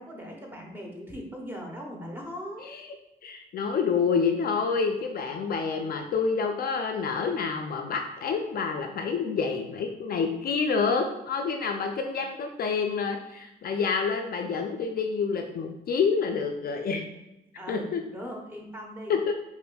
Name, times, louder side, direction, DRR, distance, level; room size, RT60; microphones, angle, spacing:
voice 1, 0.0-2.6 17.6-19.1, equal, 10° right, -1 dB, 0.9 m, -39 dB
voice 2, 3.2-17.0 17.7-18.0 19.1-19.3, left 5 dB, 50° left, 4 dB, 0.4 m, -28 dB
5.0 x 2.5 x 2.2 m, 0.92 s
cardioid pair, 90°, 20 cm